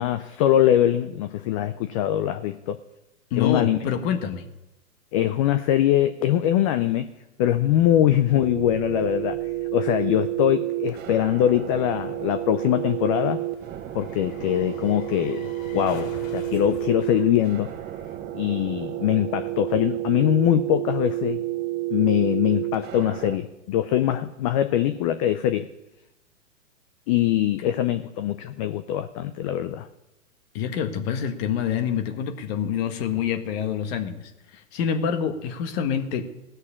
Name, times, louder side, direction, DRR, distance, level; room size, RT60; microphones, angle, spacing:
voice 1, 0.0-2.8 3.3-3.8 5.1-7.1 7.4-9.4 9.7-13.4 13.9-17.7 18.3-21.4 21.9-25.7 27.1-29.9, left 11 dB, 25° left, 11 dB, 0.4 m, -22 dB
voice 2, 3.3-4.5 30.5-34.3 34.7-36.3, left 8 dB, 45° left, 7 dB, 1.6 m, -26 dB
sound 1, 7.7-23.4, right 16 dB, 25° right, 0.9 m, -31 dB
sound 2, 8.3-18.6 18.9-19.0, left 3 dB, 70° left, 4.5 m, -46 dB
17.0 x 6.6 x 8.5 m, 0.96 s
hypercardioid pair, 125°, 42 cm